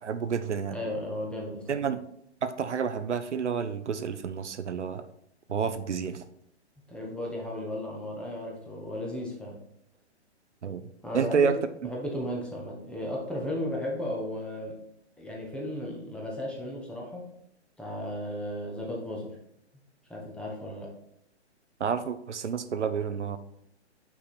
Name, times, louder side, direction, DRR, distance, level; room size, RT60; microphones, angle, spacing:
voice 1, 0.0-0.8 1.7-2.0 2.4-5.0 5.5-6.2 10.6-10.9 11.1-11.5 21.8-23.4, right 6 dB, 85° right, 11 dB, 0.7 m, -29 dB
voice 2, 0.7-1.9 6.9-9.6 11.0-14.8 15.2-17.3 17.8-19.4 20.1-20.9, left 1 dB, 5° left, -2 dB, 0.8 m, -35 dB
5.9 x 4.9 x 4.2 m, 0.74 s
hypercardioid pair, 140°, 34 cm